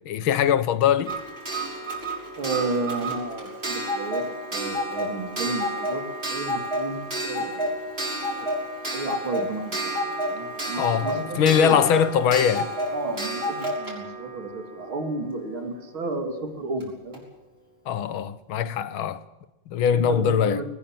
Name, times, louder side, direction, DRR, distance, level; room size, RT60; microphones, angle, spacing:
voice 1, 0.1-1.2 10.8-12.7 17.9-19.2 19.7-20.6, left 8 dB, 80° left, 1.9 m, -22 dB
Clock, 1.0-15.6 16.8-16.9 17.1-17.2, equal, 30° right, 6.1 m, -30 dB
voice 2, 2.4-4.2 4.5-6.0 6.3-7.7 8.9-11.9 12.9-17.2 19.9-20.7, right 2 dB, 80° right, 3.6 m, -32 dB
20.5 x 20.0 x 7.4 m
omnidirectional pair, 2.2 m